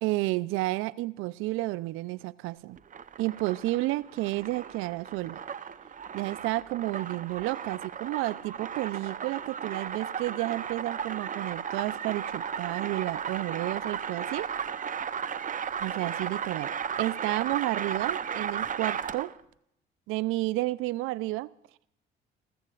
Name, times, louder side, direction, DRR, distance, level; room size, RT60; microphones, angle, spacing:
voice 1, 0.0-2.8 3.2-5.4 6.1-14.5 15.8-16.7 17.0-19.3 20.1-21.5, right 19 dB, 80° right, 0.6 m, -31 dB
sound 1, 2.8-19.4, right 7 dB, 40° right, 0.7 m, -35 dB
29.0 x 14.5 x 2.5 m
supercardioid pair, 70°, 21 cm